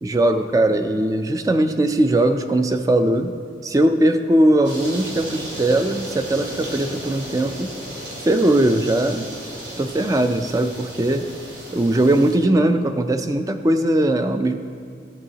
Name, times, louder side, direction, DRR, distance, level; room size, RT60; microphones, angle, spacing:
voice 1, 0.0-3.3 3.6-7.7 8.2-9.3 9.8-11.3 11.7-14.6, right 1 dB, 20° right, 8 dB, 0.3 m, -19 dB
sound 1, 4.6-12.4, right 1 dB, 85° right, 2.1 m, -35 dB
13.5 x 7.7 x 2.8 m, 2.3 s
head